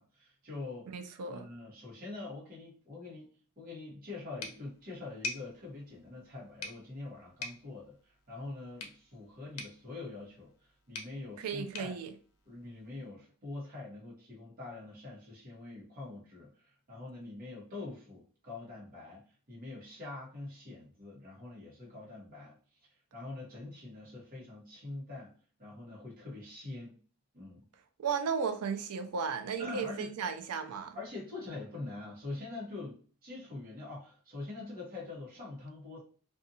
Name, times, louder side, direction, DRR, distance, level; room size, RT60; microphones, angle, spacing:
voice 1, 0.0-0.9 1.3-3.3 3.6-10.5 10.9-11.9 12.4-19.2 19.5-22.6 23.1-25.3 25.6-27.0 27.3-27.6 29.6-30.1 30.9-36.0, left 2 dB, 40° right, 1.1 m, -44 dB
voice 2, 0.9-1.5 11.4-12.1 28.0-31.0, right 6 dB, 85° right, 0.4 m, -35 dB
sound 1, 4.4-13.1, left 3 dB, 80° left, 0.6 m, -47 dB
2.6 x 2.4 x 2.6 m
head